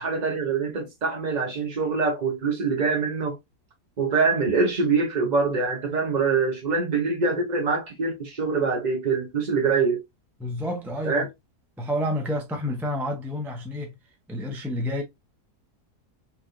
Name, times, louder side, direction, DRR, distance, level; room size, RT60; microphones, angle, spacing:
voice 1, 0.0-3.4 4.0-10.0 11.0-11.3, right 4 dB, 40° right, 0.6 m, -24 dB
voice 2, 10.4-11.3 11.8-13.9 14.3-15.0, left 1 dB, ahead, 0.6 m, -29 dB
4.0 x 3.2 x 2.5 m
omnidirectional pair, 1.7 m